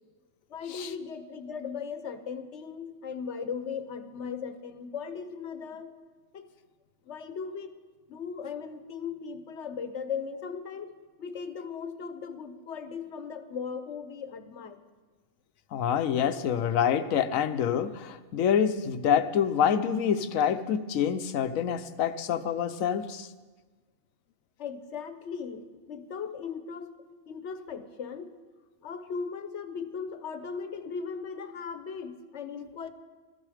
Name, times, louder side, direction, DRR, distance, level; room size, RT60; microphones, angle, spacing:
voice 1, 0.5-5.9 6.3-6.5 7.1-7.8 8.1-10.9 11.2-14.8 24.6-28.3 28.8-32.9, left 6 dB, 60° left, 10 dB, 1.1 m, -38 dB
voice 2, 15.7-23.3, left 8 dB, 75° left, 11 dB, 1.1 m, -26 dB
17.5 x 13.5 x 4.9 m, 1.4 s
omnidirectional pair, 1.4 m